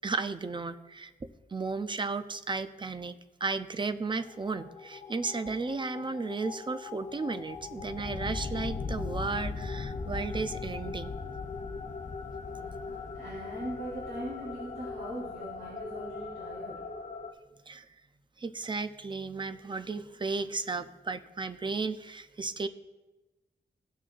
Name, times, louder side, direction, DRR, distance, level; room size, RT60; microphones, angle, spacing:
voice 1, 0.0-3.1 3.4-11.1 17.7-17.9 18.4-22.7, right 4 dB, 30° right, 10 dB, 0.5 m, -34 dB
sound 1, 4.2-17.3, left 4 dB, 45° left, 0.6 m, -39 dB
voice 2, 12.5-16.8, right 1 dB, 70° right, -8 dB, 3.4 m, -41 dB
17.0 x 6.1 x 2.5 m, 1.1 s
wide cardioid pair, 120°, 17 cm